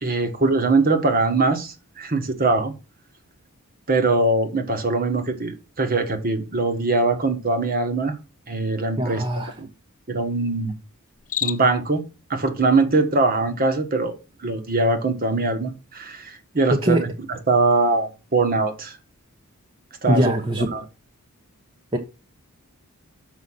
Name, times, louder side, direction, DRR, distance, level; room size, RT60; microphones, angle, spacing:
voice 1, 0.0-2.7 3.9-8.2 8.5-9.7 10.1-10.7 11.4-12.0 12.3-14.2 14.4-19.0 20.0-20.3 20.7-20.8, right 3 dB, 40° right, 1.4 m, -22 dB
voice 2, 9.0-9.5 16.7-17.1 20.1-20.7 21.9-22.0, right 1 dB, 25° right, 0.9 m, -21 dB
Cricket, 11.1-11.9, left 11 dB, 35° left, 0.4 m, -29 dB
6.5 x 5.5 x 5.6 m
head